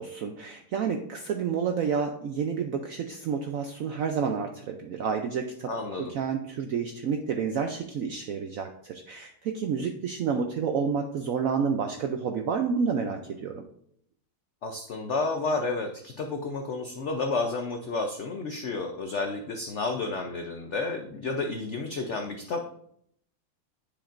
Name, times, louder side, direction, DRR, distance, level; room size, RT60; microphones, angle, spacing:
voice 1, 0.0-5.7 6.0-13.6, right 6 dB, 80° right, 5 dB, 0.7 m, -29 dB
voice 2, 5.7-6.1 14.6-22.7, left 3 dB, 80° left, 4 dB, 0.6 m, -31 dB
10.0 x 5.1 x 2.5 m, 0.69 s
omnidirectional pair, 2.0 m